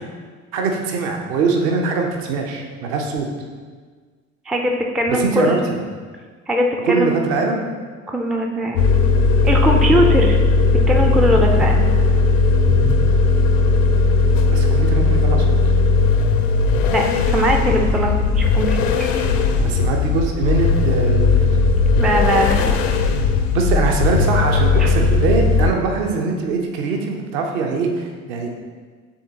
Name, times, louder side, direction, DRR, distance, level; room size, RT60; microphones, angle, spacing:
voice 1, 0.5-3.3 5.1-5.8 6.8-7.6 14.5-15.6 19.6-21.5 23.5-28.5, right 4 dB, 55° right, 2 dB, 0.9 m, -22 dB
voice 2, 4.5-5.6 6.5-7.2 8.1-8.8 9.4-10.4 10.7-11.9 12.7-13.0 16.9-19.1 22.0-22.8 24.8-25.0, equal, ahead, 1 dB, 0.4 m, -20 dB
sound 1, 8.7-25.7, left 4 dB, 70° left, 0.6 m, -17 dB
10.0 x 3.6 x 2.9 m, 1.5 s
figure-of-eight pair, 60°, 41 cm